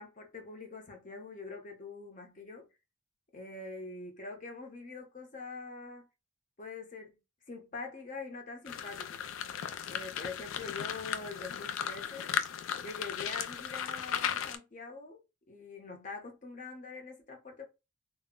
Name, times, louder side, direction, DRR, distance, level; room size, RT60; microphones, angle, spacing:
voice 1, 0.0-2.7 3.3-6.1 6.6-7.2 7.5-9.2 9.9-12.3 12.8-15.2 15.5-17.6, left 3 dB, 40° left, 0.7 m, -44 dB
sound 1, 8.7-14.6, left 8 dB, 80° left, 0.4 m, -36 dB
2.0 x 2.0 x 3.6 m
head